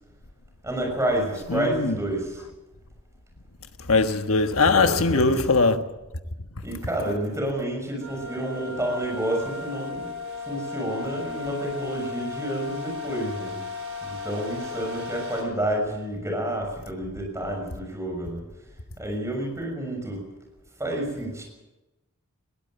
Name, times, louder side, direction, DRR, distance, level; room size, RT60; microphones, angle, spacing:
voice 1, 0.6-2.4 4.7-5.3 6.6-10.1 10.4-13.6 14.0-18.4 19.0-20.3 20.8-21.4, right 1 dB, 15° right, 6.8 m, -29 dB
voice 2, 1.5-2.0 3.8-5.8, left 3 dB, 70° left, 1.4 m, -21 dB
sound 1, 8.0-15.4, left 4 dB, 65° right, 4.8 m, -35 dB
21.5 x 16.5 x 8.0 m
head